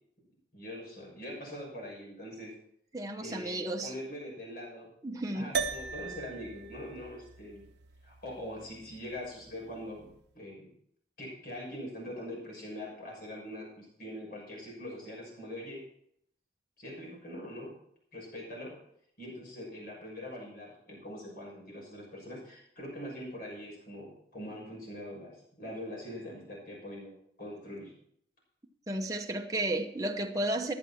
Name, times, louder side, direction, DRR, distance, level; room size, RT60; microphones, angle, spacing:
voice 1, 0.5-2.5 3.2-4.9 5.3-7.7 8.0-10.7 11.2-15.8 16.8-17.7 18.1-18.8 19.2-27.1 27.4-27.9, left 1 dB, 55° left, -2 dB, 6.5 m, -43 dB
voice 2, 2.9-3.9 5.0-5.5 28.9-30.7, right 1 dB, 20° right, 2 dB, 0.9 m, -33 dB
sound 1, 5.5-10.1, right 5 dB, 65° right, 0.9 m, -39 dB
14.0 x 11.0 x 4.3 m, 0.68 s
head